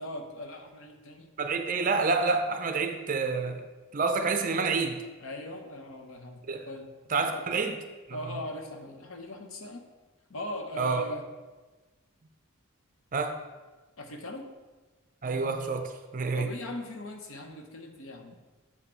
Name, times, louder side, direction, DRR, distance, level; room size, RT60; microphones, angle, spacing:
voice 1, 0.0-1.3 5.2-6.9 7.2-7.5 8.1-9.9 10.3-11.2 14.0-14.5 16.4-18.3, left 1 dB, 65° left, 5 dB, 0.8 m, -40 dB
voice 2, 1.4-3.6 3.9-5.0 6.5-6.7 7.1-7.8 8.1-8.2 10.8-11.0 13.1-13.4 15.2-16.5, right 4 dB, 40° right, 6 dB, 0.5 m, -28 dB
7.3 x 4.2 x 4.4 m, 1.2 s
head